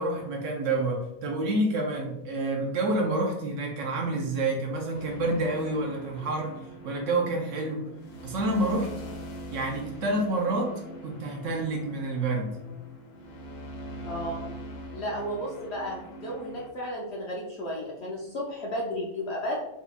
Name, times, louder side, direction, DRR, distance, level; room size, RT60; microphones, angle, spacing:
voice 1, 0.0-6.6 6.8-7.9 8.2-8.9 9.5-12.6, right 2 dB, 65° right, 1 dB, 0.8 m, -28 dB
sound 1, 4.9-16.7, equal, 85° left, 1.1 m, -43 dB
voice 2, 14.0-14.4 14.9-19.6, equal, 60° left, -3 dB, 0.7 m, -33 dB
3.7 x 2.8 x 2.3 m, 0.91 s
omnidirectional pair, 1.6 m